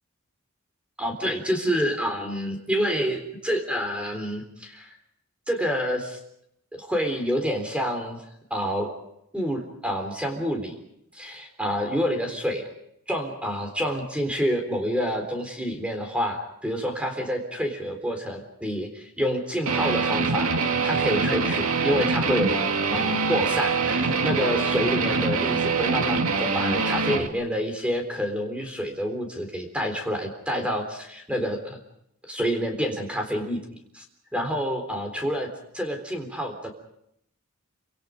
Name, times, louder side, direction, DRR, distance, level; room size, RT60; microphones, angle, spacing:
voice 1, 1.0-4.9 5.5-6.2 6.7-8.2 8.5-8.9 9.3-10.7 11.1-12.6 13.1-20.5 20.8-22.6 22.9-31.8 32.3-33.6 33.9-34.0 34.3-35.5 35.7-36.7, equal, 5° right, 4 dB, 3.8 m, -28 dB
Guitar, 19.7-27.3, right 4 dB, 75° right, 2.1 m, -24 dB
28.0 x 26.0 x 5.2 m, 0.78 s
head